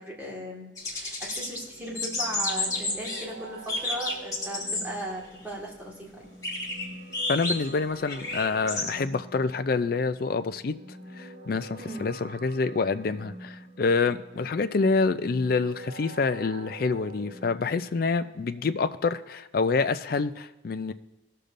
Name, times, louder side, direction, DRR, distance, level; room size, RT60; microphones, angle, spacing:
voice 1, 0.0-6.3 11.8-12.0 14.3-14.5, right 1 dB, 10° right, -4 dB, 1.8 m, -37 dB
sound 1, 0.8-1.5 1.8-3.2 3.7-4.9 5.3-5.4 6.4-8.9, left 2 dB, 20° left, 1.4 m, -31 dB
sound 2, 1.8-17.5, right 1 dB, 70° right, 1.1 m, -46 dB
voice 2, 7.3-10.7 11.2-20.9, left 4 dB, 50° left, 11 dB, 0.4 m, -27 dB
17.5 x 6.6 x 2.6 m, 0.99 s
head